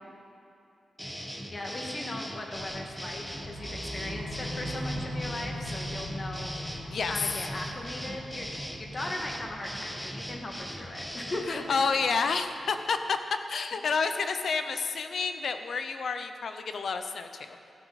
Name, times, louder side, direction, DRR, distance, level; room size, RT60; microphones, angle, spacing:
sound 1, 1.0-11.5, equal, 5° left, 1.2 m, -40 dB
voice 1, 1.5-8.5 8.8-11.6, left 2 dB, 40° left, 1 dB, 2.0 m, -38 dB
sound 2, 2.5-12.6, equal, 90° left, 3.3 m, -40 dB
voice 2, 11.5-13.2 13.5-17.6, left 5 dB, 70° left, 8 dB, 0.8 m, -29 dB
15.5 x 12.0 x 4.2 m, 2.6 s
cardioid pair, 80°, 0 cm